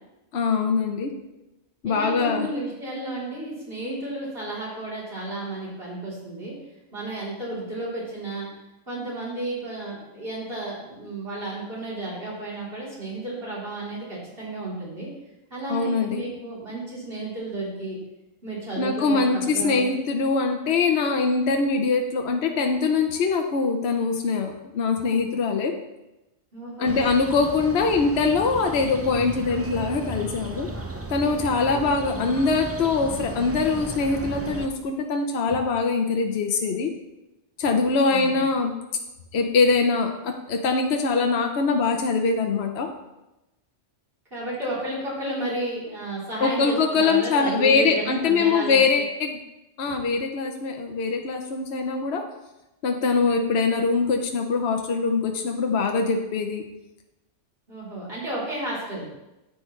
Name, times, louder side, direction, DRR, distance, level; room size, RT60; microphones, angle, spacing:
voice 1, 0.3-1.1 1.8-2.5 15.7-16.2 18.8-25.7 26.8-30.7 31.1-36.9 37.6-38.7 39.3-42.9 46.4-49.4 49.8-52.3 52.8-56.6, left 4 dB, 60° left, 3 dB, 1.0 m, -23 dB
voice 2, 1.8-6.5 6.9-8.5 8.9-15.1 15.5-18.0 18.4-19.9 26.5-27.1 38.1-38.4 44.3-49.0 57.7-59.1, right 2 dB, 50° right, -7 dB, 3.8 m, -32 dB
sound 1, 26.8-34.7, right 2 dB, 20° right, 0.4 m, -35 dB
10.0 x 8.5 x 3.2 m, 0.98 s
omnidirectional pair, 1.3 m